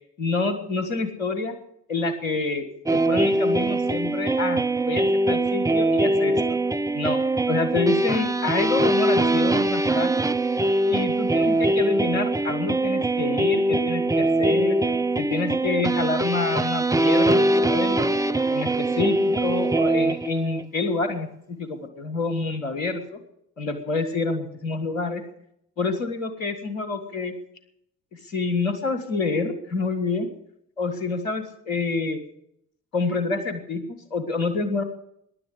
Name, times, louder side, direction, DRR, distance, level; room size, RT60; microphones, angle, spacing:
voice 1, 0.2-1.6 1.9-6.4 6.9-7.2 7.5-10.3 10.9-14.8 15.2-18.2 18.5-23.2 23.6-25.2 25.8-27.3 28.1-30.3 30.8-32.2 32.9-33.8 34.1-34.8, left 3 dB, 80° left, 10 dB, 1.6 m, -27 dB
sound 1, 2.9-20.6, right 2 dB, 10° right, 0.6 m, -22 dB
15.5 x 10.5 x 8.1 m, 0.74 s
figure-of-eight pair, 40°, 39 cm